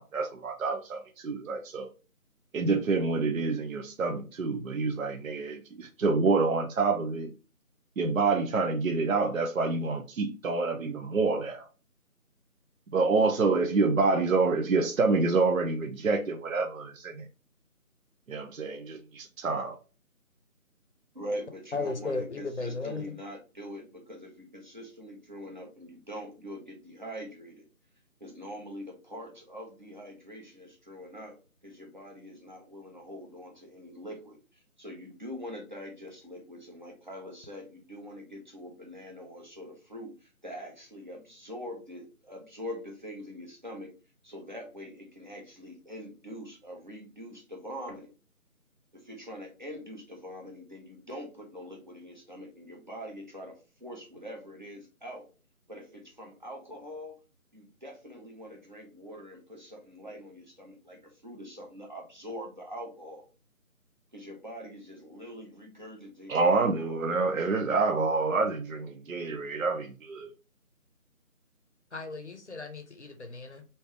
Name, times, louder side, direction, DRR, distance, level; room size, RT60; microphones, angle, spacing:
voice 1, 0.0-1.9 2.5-7.3 8.0-11.6 12.9-17.2 18.3-19.8 66.3-70.3, right 4 dB, 65° right, 0.6 m, -27 dB
voice 2, 21.1-27.7 28.2-31.4 31.6-43.9 44.2-48.1 48.9-55.3 55.7-57.2 57.5-63.3 64.1-67.5, equal, 30° right, 0.8 m, -43 dB
voice 3, 21.7-23.2 71.9-73.6, left 3 dB, 50° left, 0.7 m, -35 dB
3.2 x 2.7 x 3.3 m
figure-of-eight pair, 165°, 44 cm